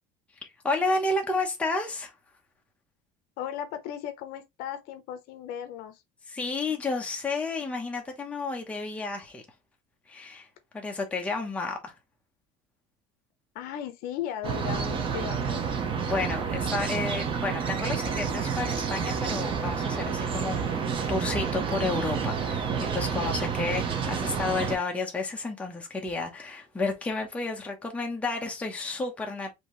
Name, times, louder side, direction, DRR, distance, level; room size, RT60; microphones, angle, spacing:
voice 1, 0.4-2.1 6.3-9.4 10.1-10.5 10.7-11.9 16.0-29.5, left 3 dB, 5° left, 0.9 m, -31 dB
voice 2, 3.4-6.0 13.5-15.8, left 10 dB, 55° left, 0.9 m, -36 dB
sound 1, 14.4-24.8, right 6 dB, 30° right, 0.8 m, -29 dB
5.3 x 2.9 x 3.1 m
cardioid pair, 160°, 18 cm